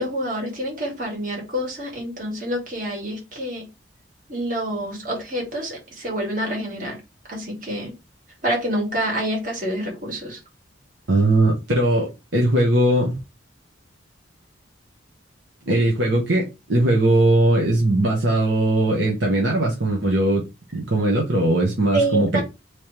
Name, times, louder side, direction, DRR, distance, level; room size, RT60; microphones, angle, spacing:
voice 1, 0.0-3.7 4.3-7.0 7.3-7.9 8.4-10.4 21.9-22.4, right 1 dB, 45° right, 2.1 m, -27 dB
voice 2, 11.1-13.2 15.7-20.4 20.7-22.4, right 1 dB, 70° right, 1.2 m, -19 dB
3.5 x 3.1 x 4.5 m
head